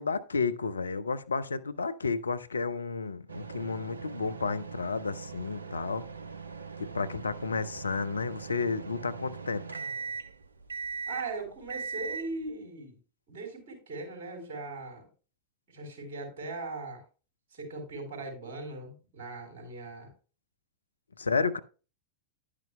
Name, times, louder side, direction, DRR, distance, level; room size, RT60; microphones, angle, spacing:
voice 1, 0.0-6.1 6.8-9.8 21.2-21.6, left 4 dB, 75° left, 0.5 m, -32 dB
sound 1, 3.3-12.5, right 5 dB, 75° right, 0.5 m, -40 dB
voice 2, 11.1-13.0 13.3-15.0 15.7-17.0 17.5-20.1, right 3 dB, 55° right, 3.9 m, -39 dB
10.5 x 9.7 x 2.2 m
figure-of-eight pair, 90°, 0 cm